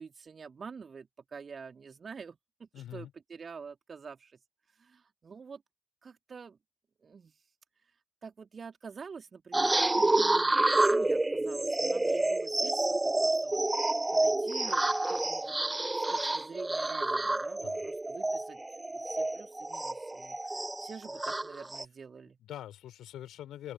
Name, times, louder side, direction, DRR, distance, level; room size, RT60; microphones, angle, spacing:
voice 1, 0.0-4.4 4.7-5.6 6.0-6.6 7.0-7.4 8.2-13.6 14.1-15.6 16.1-18.6 18.9-22.4, right 5 dB, 35° right, 3.2 m, -47 dB
voice 2, 2.7-3.1 17.6-17.8 22.4-23.7, left 12 dB, 60° left, 3.1 m, -44 dB
sound 1, 9.5-21.8, right 2 dB, 15° right, 0.6 m, -29 dB
open air
figure-of-eight pair, 45°, 0 cm